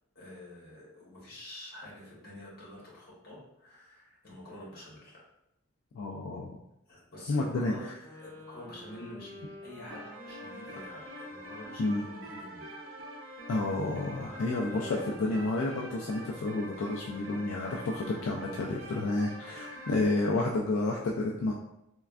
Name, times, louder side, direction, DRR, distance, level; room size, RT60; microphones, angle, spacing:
voice 1, 0.1-5.2 6.9-7.9 8.2-12.7 14.2-15.4 19.4-19.9, left 1 dB, 45° left, -6 dB, 1.1 m, -48 dB
voice 2, 5.9-6.6 7.3-7.9 11.8-12.0 13.5-21.5, left 2 dB, 70° left, -2 dB, 0.3 m, -30 dB
sound 1, 8.0-17.2, left 1 dB, 15° left, 0.6 m, -50 dB
sound 2, 9.9-20.1, equal, 80° right, 0.6 m, -45 dB
3.3 x 2.2 x 2.4 m, 0.84 s
head